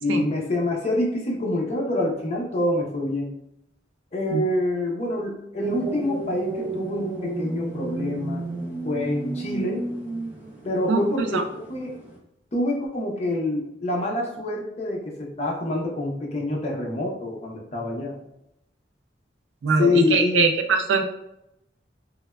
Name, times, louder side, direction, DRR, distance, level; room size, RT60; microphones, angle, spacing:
voice 1, 0.0-3.3 4.1-8.4 8.8-9.8 10.6-11.4 11.7-11.9 12.5-18.2 19.8-20.5, left 2 dB, 35° left, -1 dB, 0.5 m, -26 dB
sound 1, 5.6-12.2, right 3 dB, 10° right, 0.5 m, -32 dB
voice 2, 10.9-11.4 19.6-21.0, right 4 dB, 85° right, 5 dB, 0.3 m, -22 dB
3.2 x 2.1 x 2.2 m, 0.81 s
head